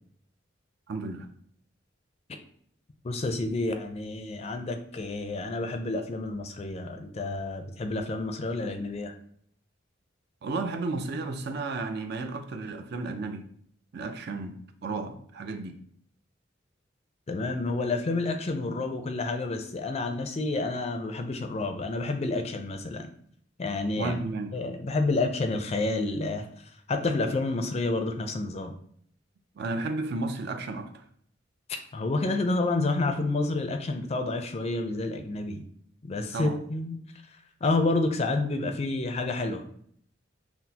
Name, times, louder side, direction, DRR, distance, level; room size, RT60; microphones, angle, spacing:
voice 1, 0.9-1.3 10.4-13.5 13.9-15.8 24.0-24.6 29.6-31.0 36.3-36.6, right 3 dB, 55° right, 0.4 m, -33 dB
voice 2, 3.0-9.1 17.3-23.1 23.6-24.1 24.5-26.5 26.9-28.7 31.9-35.6 36.0-37.0 37.6-39.6, left 2 dB, 35° left, 0.4 m, -29 dB
5.9 x 2.0 x 2.8 m
head